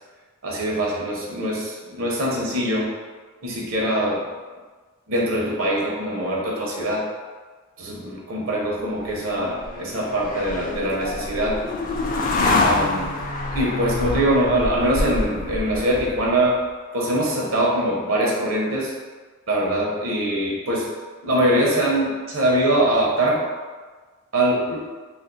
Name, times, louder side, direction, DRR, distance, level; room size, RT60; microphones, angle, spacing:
voice 1, 0.4-2.9 3.4-4.3 5.1-7.1 7.8-11.6 12.6-13.1 13.5-16.6 16.9-18.9 19.5-20.9 21.2-23.4 24.3-24.9, right 1 dB, 80° right, -3 dB, 0.8 m, -23 dB
sound 1, 9.0-16.4, left 2 dB, 40° left, 0.4 m, -26 dB
2.5 x 2.5 x 3.8 m, 1.4 s
head